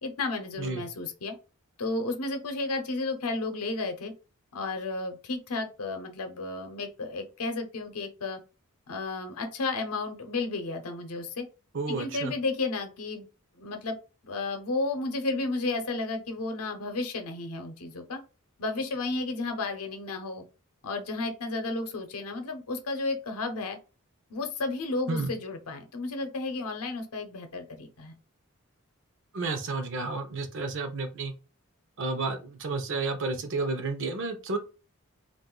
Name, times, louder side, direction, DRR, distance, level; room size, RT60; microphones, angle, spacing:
voice 1, 0.0-1.4 1.8-4.1 4.5-8.4 8.9-11.5 11.9-13.3 13.6-14.0 14.2-18.2 18.6-20.4 20.8-23.8 24.3-28.2, left 3 dB, 80° left, 6 dB, 0.7 m, -32 dB
voice 2, 11.7-12.3 25.1-25.3 29.3-31.3 32.0-34.6, right 3 dB, 55° right, 7 dB, 0.6 m, -31 dB
2.5 x 2.4 x 3.7 m, 0.32 s
head